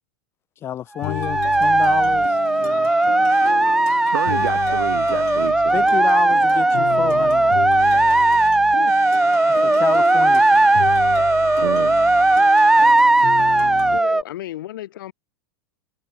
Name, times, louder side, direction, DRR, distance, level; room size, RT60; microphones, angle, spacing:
voice 1, 0.6-2.3 2.6-3.8 5.7-7.4 9.5-10.7, left 11 dB, 20° left, 2.1 m, -30 dB
sound 1, 1.0-14.0, left 24 dB, 50° left, 1.8 m, -32 dB
sound 2, 1.0-14.2, right 2 dB, 5° right, 0.4 m, -17 dB
sound 3, 3.3-3.6 4.1-5.5 7.8-8.6 8.9-13.0, right 13 dB, 25° right, 4.9 m, -38 dB
voice 2, 4.1-5.9 11.6-12.0, right 12 dB, 85° right, 2.8 m, -28 dB
voice 3, 13.9-15.1, left 14 dB, 70° left, 5.7 m, -33 dB
supercardioid pair, 165°, 11 cm